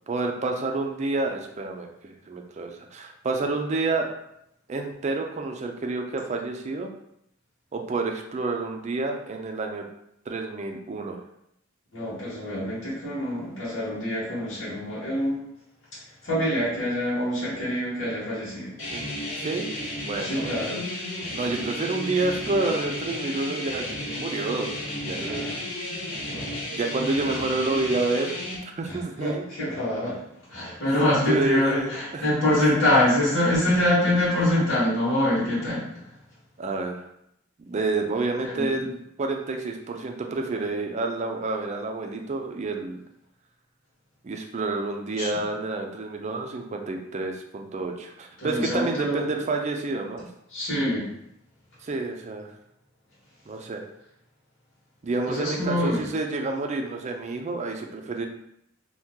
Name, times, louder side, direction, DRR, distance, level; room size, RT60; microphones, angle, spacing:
voice 1, 0.1-4.1 4.7-6.9 7.7-9.8 10.3-11.2 18.9-19.1 19.4-19.7 20.1-20.7 21.3-24.7 25.0-25.5 26.7-28.4 28.8-29.5 30.8-32.3 36.6-37.0 37.7-43.0 44.2-50.3 51.8-52.5 53.5-53.8 55.0-58.3, right 3 dB, 35° right, 3 dB, 0.4 m, -29 dB
voice 2, 11.9-15.5 16.2-18.7 20.2-20.8 25.1-25.6 26.2-26.6 28.8-30.2 30.5-36.0 38.4-38.8 45.2-45.3 48.4-49.2 50.5-51.1 55.2-56.0, left 1 dB, 65° left, -10 dB, 1.2 m, -25 dB
sound 1, 18.8-28.6, left 1 dB, 85° left, 1.0 m, -33 dB
2.8 x 2.3 x 3.5 m, 0.77 s
head